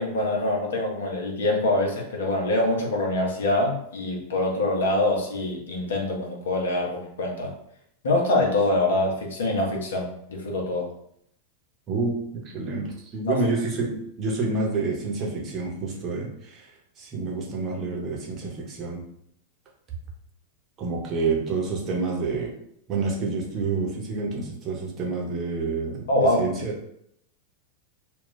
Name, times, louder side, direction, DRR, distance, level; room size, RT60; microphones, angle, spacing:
voice 1, 0.0-7.5 8.0-10.9 13.2-13.4 26.1-26.5, left 1 dB, 65° left, 0 dB, 0.8 m, -24 dB
voice 2, 11.9-16.7 17.0-19.0 20.8-22.5 22.9-26.1 26.4-26.7, right 3 dB, 30° right, -2 dB, 0.8 m, -28 dB
2.4 x 2.3 x 3.7 m, 0.71 s
figure-of-eight pair, 90°, 0 cm